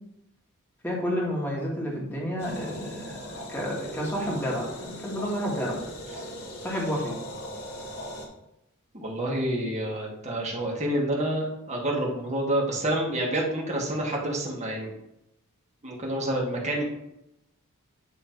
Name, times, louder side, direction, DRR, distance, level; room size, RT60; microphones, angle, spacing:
voice 1, 0.8-5.8 6.6-7.1, equal, 10° left, -4 dB, 1.7 m, -30 dB
sound 1, 2.4-8.3, equal, 80° left, 1.9 m, -39 dB
voice 2, 8.9-14.9 15.8-16.8, right 1 dB, 30° right, -2 dB, 1.5 m, -28 dB
9.4 x 3.2 x 4.5 m, 0.86 s
head